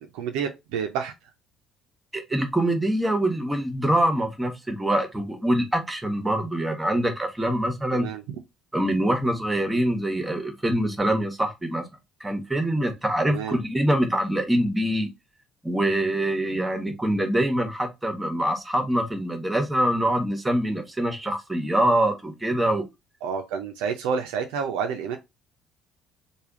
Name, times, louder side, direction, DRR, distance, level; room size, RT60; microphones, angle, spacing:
voice 1, 0.1-1.1 7.9-8.2 13.3-13.6 23.2-25.2, right 6 dB, 70° right, 0.5 m, -29 dB
voice 2, 2.1-8.1 8.7-11.8 12.2-15.1 15.6-22.9, right 1 dB, 15° right, 1.0 m, -24 dB
3.3 x 2.3 x 3.7 m
figure-of-eight pair, 50°, 0 cm